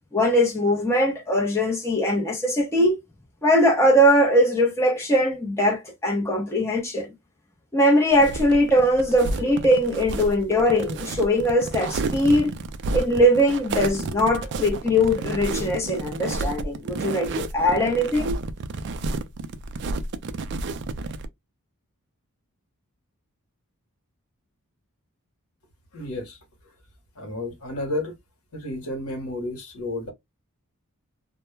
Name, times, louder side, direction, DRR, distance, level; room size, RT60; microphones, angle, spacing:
voice 1, 0.1-3.0 3.4-7.1 7.7-12.5 12.9-18.4, equal, 10° left, 0.7 m, -21 dB
sound 1, 8.1-21.3, right 3 dB, 50° right, 0.3 m, -31 dB
voice 2, 25.9-26.4 27.1-28.2 28.5-30.1, left 1 dB, 75° left, 0.9 m, -31 dB
2.2 x 2.1 x 3.0 m
head